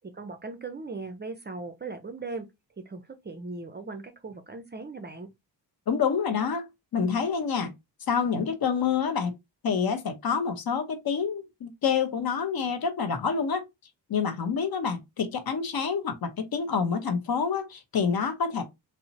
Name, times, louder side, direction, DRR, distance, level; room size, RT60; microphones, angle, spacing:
voice 1, 0.1-2.4 2.9-5.3, right 3 dB, 25° right, 0.4 m, -38 dB
voice 2, 5.9-7.7 8.1-9.3 9.6-13.6 14.1-18.6, left 6 dB, 55° left, 0.7 m, -27 dB
2.7 x 2.1 x 2.6 m
cardioid pair, 65°, 43 cm